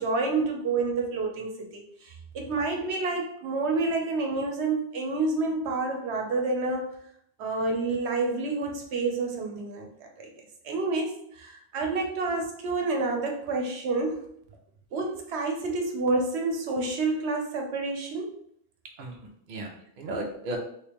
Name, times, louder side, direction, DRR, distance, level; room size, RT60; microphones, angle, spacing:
voice 1, 0.0-6.9 7.4-10.3 10.6-14.2 14.9-18.3, right 3 dB, 85° right, 2 dB, 1.0 m, -29 dB
voice 2, 19.0-20.6, right 2 dB, 60° right, 1 dB, 0.8 m, -36 dB
3.2 x 3.0 x 3.4 m, 0.69 s
omnidirectional pair, 1.1 m